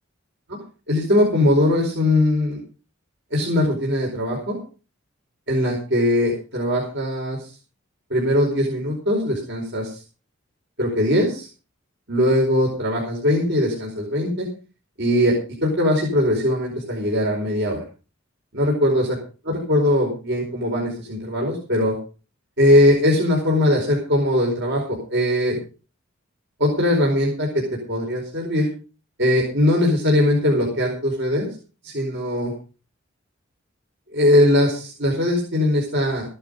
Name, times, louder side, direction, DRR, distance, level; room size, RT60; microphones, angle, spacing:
voice 1, 0.9-2.6 3.3-4.6 5.5-7.4 8.1-10.0 10.8-11.5 12.1-14.5 15.0-15.4 15.6-17.8 18.5-19.1 19.4-21.9 22.6-25.6 26.6-28.7 29.2-31.5 31.8-32.5 34.1-36.2, left 1 dB, 60° right, -1 dB, 4.7 m, -20 dB
15.0 x 12.0 x 5.2 m, 0.35 s
head